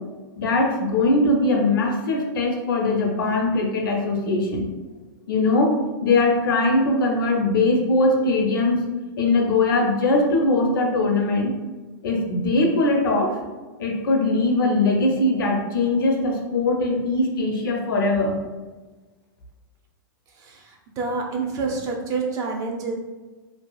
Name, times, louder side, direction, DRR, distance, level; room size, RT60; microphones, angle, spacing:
voice 1, 0.4-4.7 5.3-5.8 6.0-8.8 9.2-11.5 12.0-13.4 13.8-18.4, left 2 dB, 80° left, 1 dB, 0.6 m, -21 dB
voice 2, 20.3-22.9, right 4 dB, 30° right, 1 dB, 0.5 m, -28 dB
2.6 x 2.4 x 2.3 m, 1.3 s
hypercardioid pair, 125°, 11 cm